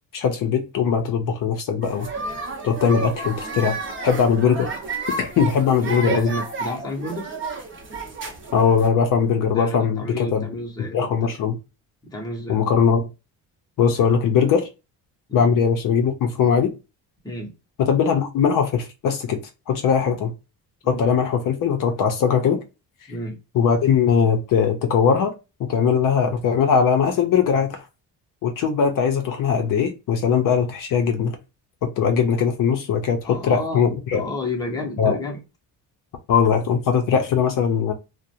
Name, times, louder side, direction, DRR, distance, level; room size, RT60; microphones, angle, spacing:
voice 1, 0.1-2.1 2.6-3.8 4.0-4.7 5.2-6.3 8.5-10.4 10.9-11.6 12.5-13.1 13.8-14.7 15.3-16.7 17.8-19.4 19.7-20.3 20.9-22.6 23.5-25.3 25.6-27.8 28.4-31.4 32.0-34.2 35.0-35.2 36.3-37.9, left 6 dB, 60° left, 0.5 m, -20 dB
sound 1, 1.8-8.9, right 3 dB, 30° right, 0.6 m, -31 dB
voice 2, 5.8-7.3 9.5-11.4 12.1-12.7 15.3-15.5 17.2-17.5 20.0-20.2 20.8-21.1 23.1-23.4 33.2-33.8 34.1-35.4, left 1 dB, 10° left, 0.6 m, -31 dB
2.4 x 2.0 x 2.7 m
cardioid pair, 140°, 38 cm